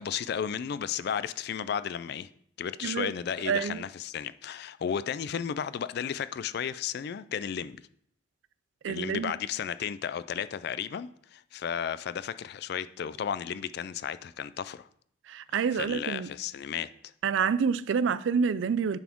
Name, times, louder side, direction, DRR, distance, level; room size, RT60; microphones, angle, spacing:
voice 1, 0.0-2.3 2.6-7.8 8.9-14.9 15.5-16.9, left 8 dB, 60° left, 0.3 m, -34 dB
voice 2, 2.8-3.1 3.5-3.8 8.8-9.3 15.3-16.3 17.2-19.0, right 6 dB, 75° right, 0.4 m, -27 dB
10.5 x 4.2 x 4.5 m
head